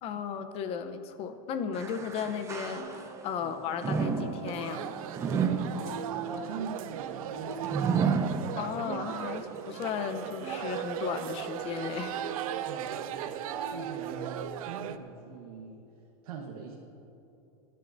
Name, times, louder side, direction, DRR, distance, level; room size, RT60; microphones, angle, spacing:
voice 1, 0.0-4.9 8.5-12.6, left 7 dB, 35° left, 9 dB, 0.7 m, -35 dB
sound 1, 1.7-3.3 3.8-9.1 9.5-9.6 10.5-10.6, right 5 dB, 15° right, 0.7 m, -32 dB
sound 2, 2.8-15.1, right 6 dB, 35° right, 1.8 m, -44 dB
sound 3, 4.5-15.0, right 10 dB, 70° right, 0.6 m, -38 dB
voice 2, 6.2-7.8 12.6-15.8 16.2-16.8, right 5 dB, 85° right, -1 dB, 1.3 m, -42 dB
26.0 x 10.0 x 2.7 m, 2.9 s
supercardioid pair, 155°, 18 cm